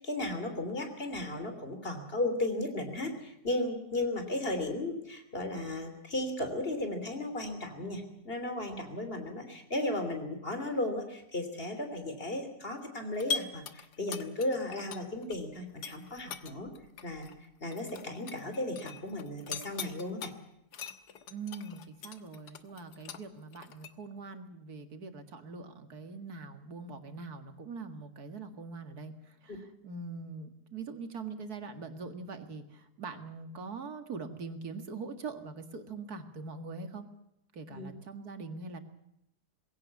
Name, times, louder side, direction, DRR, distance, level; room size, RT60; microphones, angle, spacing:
voice 1, 0.0-16.7 17.0-17.3 17.6-20.3 29.5-29.6 37.7-37.9, left 1 dB, 35° left, 7 dB, 3.5 m, -35 dB
sound 1, 13.1-15.4 15.7-20.3 20.7-23.9, left 6 dB, 85° left, 1.8 m, -41 dB
voice 2, 21.3-29.1 29.4-37.1 37.5-38.8, right 4 dB, 70° right, 8 dB, 2.4 m, -43 dB
21.0 x 17.0 x 8.4 m, 0.83 s
omnidirectional pair, 1.7 m